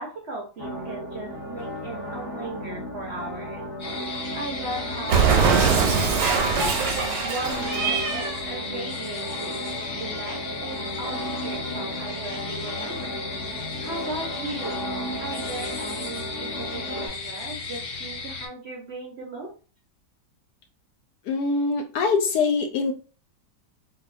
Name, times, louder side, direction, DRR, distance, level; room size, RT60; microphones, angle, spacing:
voice 1, 0.0-3.6 4.3-9.6 9.9-13.3 13.8-14.8 15.2-19.5, right 2 dB, 55° right, -2 dB, 0.8 m, -37 dB
sound 1, 0.6-17.1, equal, 25° left, 0.6 m, -34 dB
sound 2, 3.8-18.5, left 4 dB, 50° left, 1.0 m, -35 dB
Cat, 5.1-8.4, right 5 dB, 80° right, 1.3 m, -22 dB
voice 2, 21.2-22.9, left 4 dB, 75° left, 4 dB, 1.2 m, -23 dB
3.9 x 2.6 x 2.5 m, 0.36 s
omnidirectional pair, 1.8 m